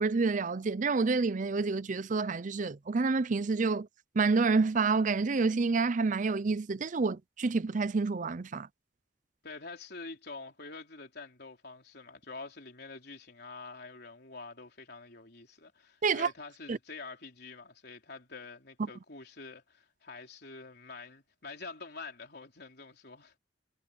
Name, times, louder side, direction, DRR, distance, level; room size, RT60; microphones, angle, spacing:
voice 1, 0.0-3.9 4.2-8.7 16.0-16.3 16.7-16.8, right 4 dB, 40° right, 0.5 m, -28 dB
voice 2, 9.4-23.3, left 3 dB, 55° left, 3.9 m, -46 dB
head